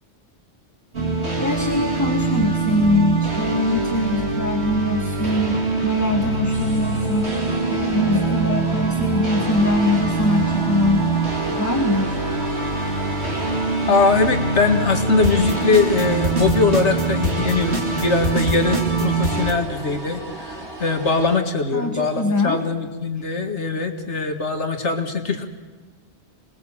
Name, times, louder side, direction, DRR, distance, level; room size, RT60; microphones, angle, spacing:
sound 1, 0.9-19.5, right 3 dB, 70° right, 2.8 m, -23 dB
voice 1, 1.4-7.4 7.7-11.1 11.6-12.2 21.7-22.6, left 1 dB, 15° left, 4 dB, 1.5 m, -22 dB
sound 2, 6.5-21.4, right 2 dB, 90° right, 3.8 m, -36 dB
voice 2, 13.9-25.4, left 4 dB, 85° left, 5 dB, 2.3 m, -21 dB
27.0 x 20.5 x 7.4 m, 1.4 s
omnidirectional pair, 1.1 m